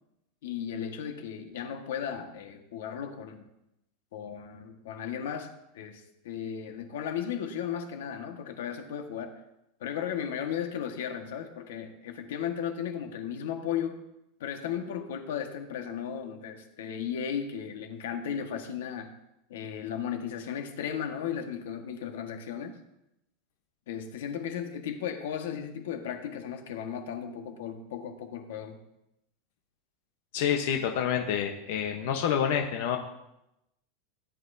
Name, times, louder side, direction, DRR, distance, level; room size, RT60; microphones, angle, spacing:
voice 1, 0.4-3.4 4.1-9.3 9.8-14.0 14.4-19.1 19.5-22.8 23.9-28.8, left 8 dB, 90° left, 5 dB, 1.5 m, -35 dB
voice 2, 30.3-33.0, left 8 dB, 55° left, 3 dB, 1.0 m, -28 dB
17.0 x 10.5 x 2.7 m, 0.86 s
supercardioid pair, 170°, 0 cm